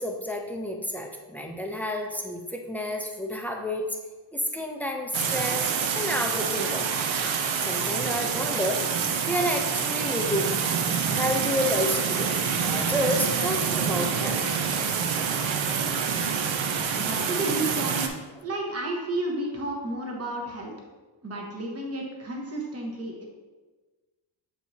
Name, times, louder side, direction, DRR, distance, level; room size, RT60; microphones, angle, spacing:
voice 1, 0.0-3.9 4.3-5.7 5.9-7.1 7.6-10.5 11.1-12.3 12.6-14.5 15.3-17.0, equal, 5° left, 2 dB, 0.4 m, -30 dB
sound 1, 5.1-18.1, right 6 dB, 80° right, 0.7 m, -27 dB
voice 2, 17.0-20.7 21.2-23.2, right 2 dB, 30° right, -1 dB, 1.0 m, -32 dB
7.7 x 4.6 x 2.7 m, 1.3 s
wide cardioid pair, 175°, 46 cm